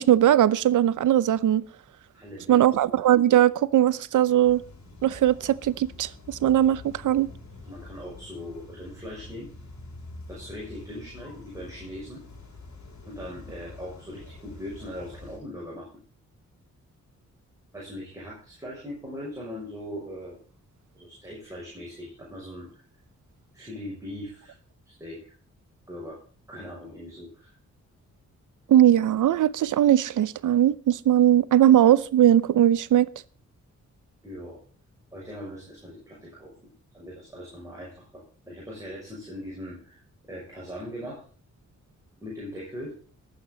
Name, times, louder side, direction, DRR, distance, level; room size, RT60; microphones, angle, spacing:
voice 1, 0.0-1.6 2.5-4.6 5.0-7.3 28.7-33.1, right 11 dB, 90° right, 0.7 m, -20 dB
voice 2, 2.1-2.9 7.6-9.5 10.3-12.2 13.0-15.9 17.7-20.4 20.9-22.7 23.5-24.5 24.9-25.2 25.9-26.2 26.5-27.5 34.2-34.6 35.1-36.5 36.9-40.0 40.3-41.2 42.2-42.9, equal, 10° right, 6.2 m, -40 dB
sound 1, 4.4-15.4, left 3 dB, 65° left, 5.7 m, -46 dB
20.5 x 8.6 x 3.9 m
wide cardioid pair, 110°, 30 cm